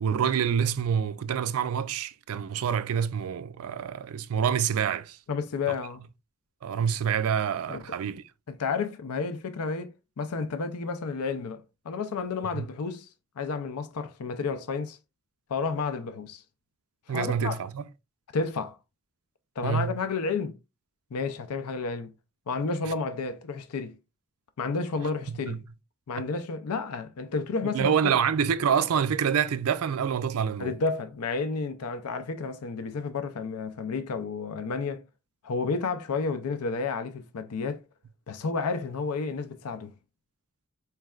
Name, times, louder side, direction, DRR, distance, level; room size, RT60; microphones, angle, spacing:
voice 1, 0.0-5.2 5.7-5.8 6.6-8.2 12.5-12.7 17.1-17.9 19.6-19.9 25.5-25.6 27.7-30.7, right 7 dB, 80° right, 0.4 m, -27 dB
voice 2, 5.3-6.0 7.7-8.0 8.5-13.1 13.4-15.0 15.5-16.4 17.1-17.6 18.3-18.8 19.6-20.6 21.1-22.1 22.5-24.0 24.6-25.6 26.1-27.9 30.6-35.0 35.4-37.8 38.3-39.9, left 4 dB, 85° left, 0.5 m, -31 dB
4.5 x 3.2 x 2.3 m
head